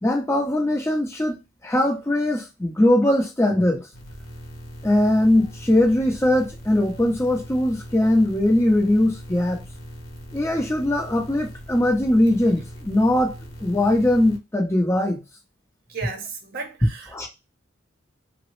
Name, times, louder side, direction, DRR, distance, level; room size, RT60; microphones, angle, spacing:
voice 1, 0.0-1.4 1.6-3.9 4.8-9.6 10.3-13.4 13.6-15.2 17.1-17.3, left 1 dB, 15° left, 0.6 m, -20 dB
sound 1, 3.9-14.4, equal, 50° left, 0.9 m, -40 dB
voice 2, 15.9-17.3, right 4 dB, 50° right, 0.7 m, -35 dB
3.5 x 2.0 x 3.0 m
head